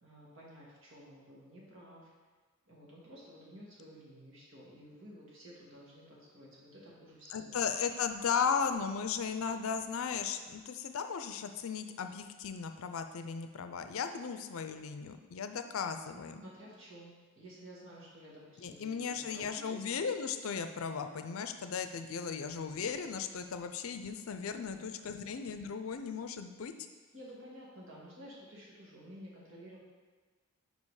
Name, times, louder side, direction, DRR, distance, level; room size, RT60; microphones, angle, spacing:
voice 1, 0.0-2.1 2.7-7.6 16.4-19.8 24.6-25.3 27.1-29.8, equal, 65° right, -5 dB, 1.9 m, -52 dB
voice 2, 7.3-16.4 18.6-26.7, left 6 dB, 75° left, 8 dB, 0.5 m, -36 dB
5.4 x 5.1 x 4.8 m, 1.4 s
head